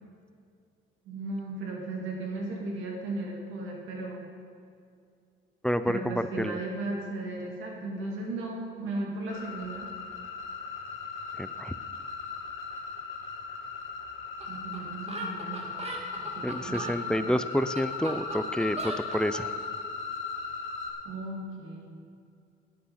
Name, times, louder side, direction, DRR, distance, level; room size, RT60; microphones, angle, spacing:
voice 1, 1.1-4.3 5.8-9.9 14.5-17.3 21.0-22.0, right 2 dB, 85° right, 0 dB, 2.1 m, -36 dB
voice 2, 5.6-6.5 11.4-11.7 16.4-19.5, equal, 5° left, 11 dB, 0.4 m, -29 dB
sound 1, 9.3-20.9, left 5 dB, 80° left, 2.1 m, -38 dB
sound 2, 14.4-14.5 14.7-14.8 15.1-17.0 17.5-19.5, right 1 dB, 30° right, 1.8 m, -37 dB
11.0 x 8.7 x 5.8 m, 2.3 s
cardioid pair, 90°, 20 cm